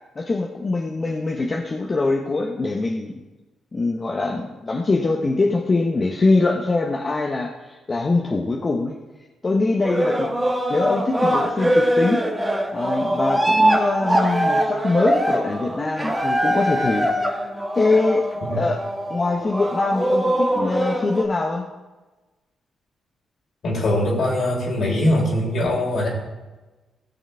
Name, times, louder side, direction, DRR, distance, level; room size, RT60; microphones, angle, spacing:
voice 1, 0.2-3.1 3.7-9.0 9.4-10.3 10.7-12.2 12.7-17.1 17.7-18.3 18.5-18.8 19.1-21.7, left 3 dB, 40° left, 0 dB, 1.2 m, -23 dB
sound 1, 9.8-21.2, right 1 dB, 15° right, 1.7 m, -22 dB
voice 2, 23.6-26.1, left 1 dB, 60° left, -2 dB, 3.4 m, -21 dB
17.0 x 6.3 x 3.5 m, 1.2 s
hypercardioid pair, 45°, 0 cm